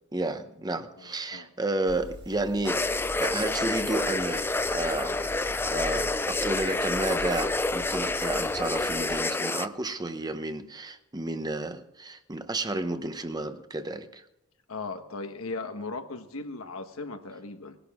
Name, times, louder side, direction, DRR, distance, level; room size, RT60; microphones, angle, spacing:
voice 1, 0.1-4.5 4.7-5.3 5.7-14.2, right 2 dB, 20° right, 9 dB, 0.8 m, -32 dB
voice 2, 1.0-1.5 14.7-17.8, left 3 dB, 85° left, 6 dB, 1.4 m, -37 dB
sound 1, 1.9-9.2, equal, 55° right, 1.7 m, -43 dB
sound 2, 2.6-9.7, left 2 dB, 10° left, 0.4 m, -28 dB
19.5 x 11.0 x 3.6 m, 0.87 s
head